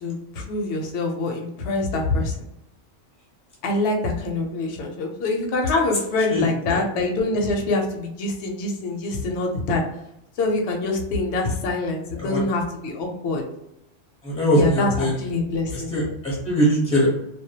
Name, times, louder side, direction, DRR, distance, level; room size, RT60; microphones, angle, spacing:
voice 1, 0.0-2.4 3.6-9.8 10.4-13.4 14.5-15.9, left 2 dB, 70° left, 1 dB, 0.8 m, -25 dB
voice 2, 14.2-15.1 15.9-17.1, equal, 5° left, -5 dB, 0.6 m, -21 dB
2.2 x 2.1 x 2.7 m, 0.82 s
omnidirectional pair, 1.2 m